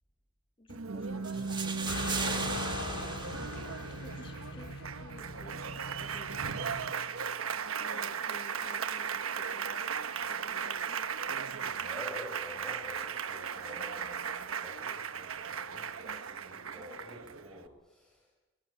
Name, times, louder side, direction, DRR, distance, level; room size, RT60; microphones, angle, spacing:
voice 1, 0.6-6.9 7.8-9.9 10.3-11.0, left 1 dB, 25° left, 5 dB, 2.0 m, -53 dB
Applause, 0.7-17.7, right 6 dB, 80° right, 1.1 m, -37 dB
sound 1, 1.2-4.3, right 5 dB, 20° right, 1.4 m, -38 dB
sound 2, 1.9-6.9, left 2 dB, 90° left, 2.4 m, -40 dB
voice 2, 11.6-18.3, left 1 dB, ahead, -5 dB, 6.1 m, -49 dB
23.5 x 21.0 x 7.3 m, 1.1 s
head